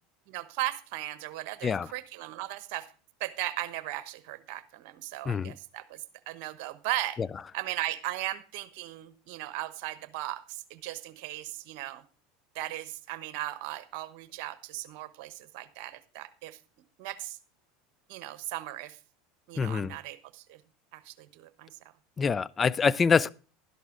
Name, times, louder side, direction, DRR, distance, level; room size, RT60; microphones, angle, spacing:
voice 1, 0.3-2.9 3.2-7.2 7.5-12.0 12.5-16.6 17.0-17.4 18.1-19.0 19.5-20.6 20.9-21.8, right 15 dB, 60° right, 1.1 m, -37 dB
voice 2, 19.6-20.0 22.2-23.3, left 5 dB, 25° left, 0.5 m, -25 dB
12.5 x 11.0 x 3.8 m
hypercardioid pair, 80°, 0 cm